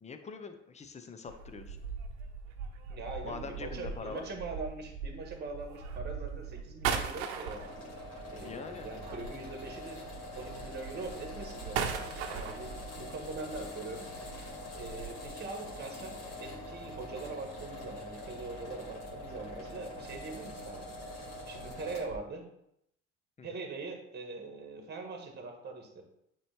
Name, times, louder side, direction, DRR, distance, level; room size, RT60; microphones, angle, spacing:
voice 1, 0.0-1.8 3.2-4.2 8.4-8.9 23.4-23.5, left 5 dB, 20° left, 7 dB, 0.7 m, -43 dB
sound 1, 1.3-9.7 10.1-15.3, right 6 dB, 70° right, 0.9 m, -40 dB
voice 2, 2.9-7.6 8.3-10.0 10.3-20.9 21.2-22.4 23.4-26.0, right 3 dB, 30° right, 3 dB, 1.5 m, -42 dB
sound 2, 7.5-22.2, left 1 dB, 45° left, 2.3 m, -44 dB
8.6 x 3.2 x 3.5 m, 0.76 s
hypercardioid pair, 70°, 36 cm